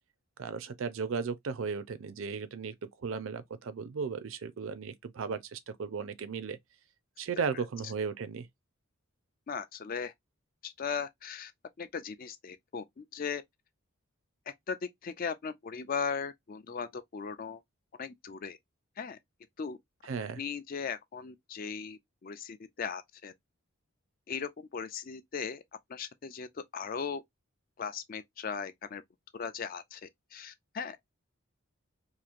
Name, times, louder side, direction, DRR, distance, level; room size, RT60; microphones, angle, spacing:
voice 1, 0.4-2.7 3.0-6.6 7.2-8.5 20.1-20.4, right 5 dB, 65° right, 0.4 m, -35 dB
voice 2, 9.5-10.1 10.6-11.5 11.8-13.4 14.5-14.8 15.0-17.6 18.0-18.6 19.0-19.2 19.6-19.8 20.3-23.3 24.3-25.6 25.9-27.2 27.8-29.0 29.3-31.1, left 6 dB, 40° left, 0.3 m, -38 dB
2.9 x 2.5 x 2.4 m
head